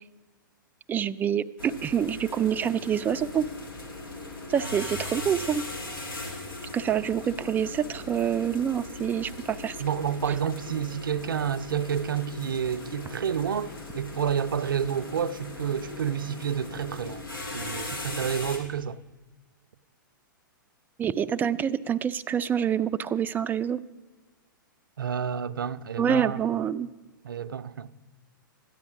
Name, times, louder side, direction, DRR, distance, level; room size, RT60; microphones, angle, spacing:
voice 1, 0.9-3.5 4.5-5.6 6.7-9.8 21.0-23.8 26.0-26.9, right 8 dB, 15° right, 0.4 m, -26 dB
sound 1, 1.6-18.6, left 2 dB, 80° left, 2.7 m, -39 dB
voice 2, 9.8-17.3 17.5-19.0 25.0-26.4 27.2-27.9, right 8 dB, 80° right, 0.5 m, -29 dB
13.0 x 9.9 x 6.0 m
hypercardioid pair, 110°, 11 cm